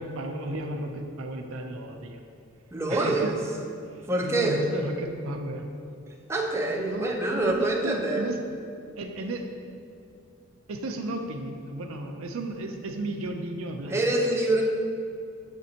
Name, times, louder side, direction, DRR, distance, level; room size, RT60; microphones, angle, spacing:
voice 1, 0.0-2.2 2.9-3.4 4.2-5.7 6.6-8.4 9.0-9.5 10.7-14.0, right 1 dB, 75° right, 3 dB, 0.5 m, -34 dB
voice 2, 2.7-3.3 4.1-4.6 6.3-8.3 13.9-14.6, right 2 dB, 15° right, -1 dB, 0.6 m, -25 dB
7.9 x 5.1 x 2.8 m, 2.4 s
head